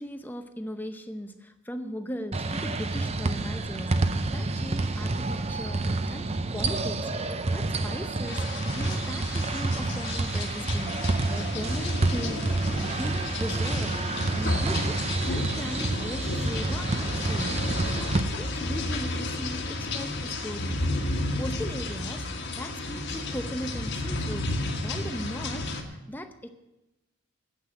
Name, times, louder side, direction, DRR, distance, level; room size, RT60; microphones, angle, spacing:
voice 1, 0.0-4.0 4.3-8.4 8.7-17.5 17.9-21.1 21.4-24.5 24.8-26.5, equal, 10° left, 8 dB, 0.6 m, -38 dB
sound 1, 2.3-18.2, right 2 dB, 30° right, 0.5 m, -29 dB
sound 2, 8.3-25.8, left 2 dB, 50° left, 1.4 m, -32 dB
9.5 x 8.1 x 8.8 m, 0.97 s
head